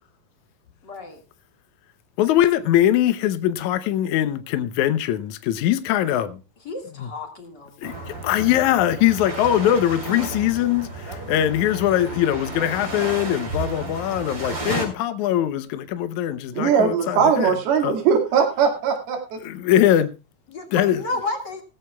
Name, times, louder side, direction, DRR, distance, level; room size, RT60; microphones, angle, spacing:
voice 1, 0.8-1.2 6.6-8.2 20.5-21.6, left 3 dB, 40° left, 1.7 m, -32 dB
voice 2, 2.2-6.3 7.0-7.1 7.8-7.9 8.2-10.9 11.3-17.6 17.8-18.0 19.4-20.1 20.7-21.0, left 12 dB, 90° left, 1.6 m, -21 dB
sound 1, 7.8-14.9, right 2 dB, 25° right, 4.8 m, -32 dB
voice 3, 16.6-19.4, right 6 dB, 75° right, 4.0 m, -20 dB
18.0 x 14.5 x 2.3 m
omnidirectional pair, 4.5 m